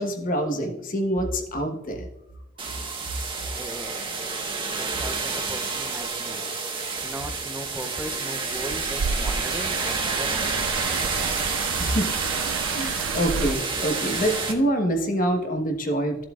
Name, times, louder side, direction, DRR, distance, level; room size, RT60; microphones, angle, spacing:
voice 1, 0.0-2.1 11.8-12.1 12.7-16.3, equal, 45° left, 4 dB, 1.2 m, -26 dB
sound 1, 2.6-14.5, right 4 dB, 25° right, 1.3 m, -29 dB
voice 2, 3.5-11.4, right 1 dB, 10° right, 7 dB, 0.5 m, -39 dB
sound 2, 8.5-13.5, right 5 dB, 85° right, 0.4 m, -31 dB
14.0 x 7.4 x 2.4 m, 0.95 s
head